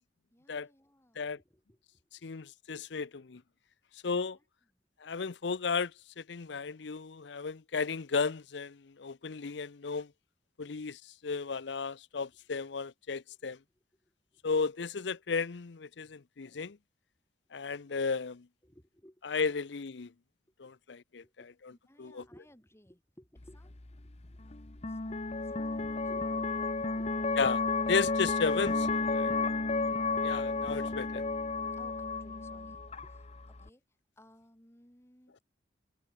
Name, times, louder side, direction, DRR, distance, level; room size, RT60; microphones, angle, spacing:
voice 1, 0.3-2.5 4.3-4.4 4.7-4.8 13.3-13.4 13.7-14.6 18.6-19.2 21.2-26.3 31.8-33.8 34.2-35.4, equal, 15° left, 4.8 m, -61 dB
voice 2, 2.2-3.4 4.0-4.4 5.0-5.9 6.2-10.1 10.6-13.6 14.4-16.8 17.5-18.5 19.2-20.1 20.6-21.2 21.6-21.7 22.0-22.2 27.4-27.6 27.9-29.3 30.2-31.2, left 5 dB, 65° left, 0.6 m, -34 dB
sound 1, 23.4-33.7, left 3 dB, 35° left, 1.0 m, -32 dB
head